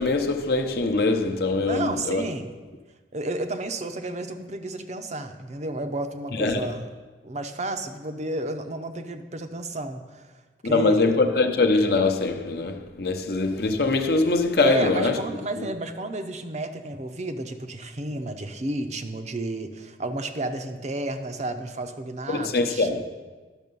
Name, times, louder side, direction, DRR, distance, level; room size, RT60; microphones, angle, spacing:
voice 1, 0.0-2.2 6.3-6.7 10.7-15.2 15.6-15.7 22.3-23.0, left 3 dB, 60° left, 0.8 m, -23 dB
voice 2, 1.6-2.5 3.1-6.9 7.2-10.3 10.6-11.1 14.6-22.9, right 2 dB, 40° right, 0.6 m, -32 dB
11.0 x 6.6 x 5.3 m
head